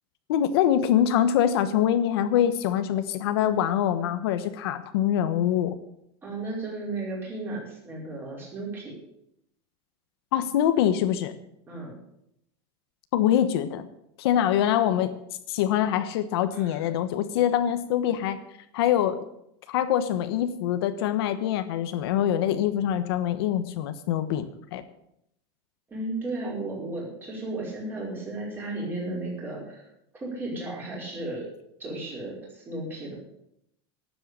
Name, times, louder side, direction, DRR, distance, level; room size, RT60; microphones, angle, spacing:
voice 1, 0.3-5.7 10.3-11.3 13.1-13.9 14.2-15.1 15.5-18.4 18.7-19.2 19.7-24.4 24.7-24.8, left 10 dB, 65° left, 10 dB, 1.1 m, -24 dB
voice 2, 6.2-8.9 11.7-11.9 16.5-16.8 25.9-29.9 30.2-31.5 31.8-33.1, right 2 dB, 15° right, -4 dB, 5.0 m, -34 dB
12.5 x 7.8 x 9.9 m, 0.78 s
supercardioid pair, 180°, 14 cm